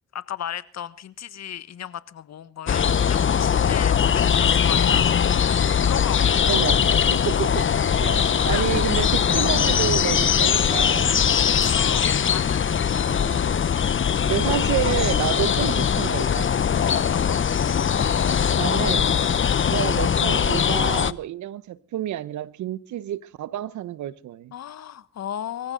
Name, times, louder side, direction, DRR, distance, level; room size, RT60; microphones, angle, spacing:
voice 1, 0.1-6.8 8.5-8.7 11.2-13.1 16.8-17.4 24.5-25.7, left 10 dB, 60° left, 1.3 m, -35 dB
sound 1, 2.7-21.1, left 7 dB, 40° left, 0.9 m, -21 dB
voice 2, 6.5-7.7 8.0-11.2 13.0-13.6 14.2-16.5 18.6-19.1 19.6-24.5, right 12 dB, 75° right, 1.1 m, -29 dB
24.5 x 15.0 x 3.9 m
supercardioid pair, 55°, 29 cm